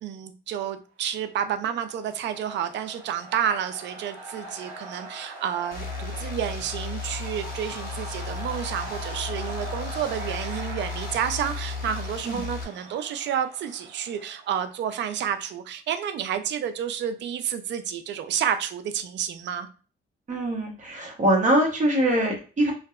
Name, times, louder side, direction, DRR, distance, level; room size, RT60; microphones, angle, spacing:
voice 1, 0.0-19.7, right 9 dB, 65° right, 10 dB, 0.4 m, -30 dB
sound 1, 1.4-15.1, right 2 dB, 80° right, 0.9 m, -41 dB
sound 2, 5.7-12.6, left 5 dB, 50° left, 0.7 m, -35 dB
voice 2, 20.3-22.7, right 1 dB, 40° right, -1 dB, 0.9 m, -23 dB
2.6 x 2.2 x 2.4 m, 0.37 s
cardioid pair, 90°, 20 cm